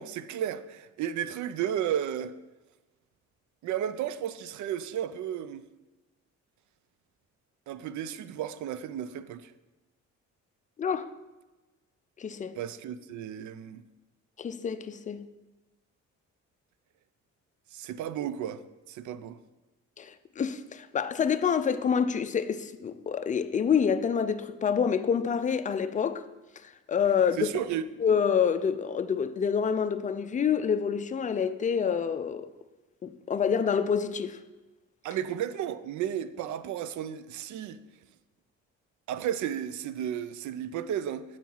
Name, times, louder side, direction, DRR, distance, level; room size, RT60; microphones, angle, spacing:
voice 1, 0.0-2.3 3.6-5.6 7.7-9.5 12.5-13.8 17.7-19.4 27.4-27.9 35.0-37.8 39.1-41.2, right 10 dB, 70° right, 0.5 m, -33 dB
voice 2, 12.2-12.6 14.4-15.2 20.0-26.2 26.9-27.5 28.0-32.5 33.0-34.4, left 7 dB, 25° left, 0.4 m, -27 dB
7.4 x 4.5 x 5.5 m
cardioid pair, 90°, 30 cm